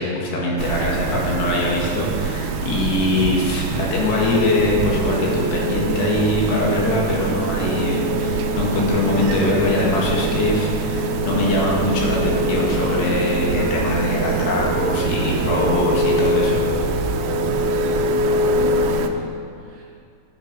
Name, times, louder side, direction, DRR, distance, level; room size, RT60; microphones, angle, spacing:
voice 1, 0.0-16.6, left 2 dB, 65° left, -3 dB, 3.7 m, -22 dB
sound 1, 0.6-19.1, right 6 dB, 90° right, 2.2 m, -26 dB
Organ, 4.3-15.2, equal, 5° left, 2.2 m, -30 dB
sound 2, 5.0-18.9, left 3 dB, 85° left, 3.6 m, -26 dB
voice 2, 17.6-19.8, right 2 dB, 50° right, -6 dB, 4.9 m, -39 dB
15.0 x 9.2 x 5.4 m, 2.4 s
omnidirectional pair, 5.6 m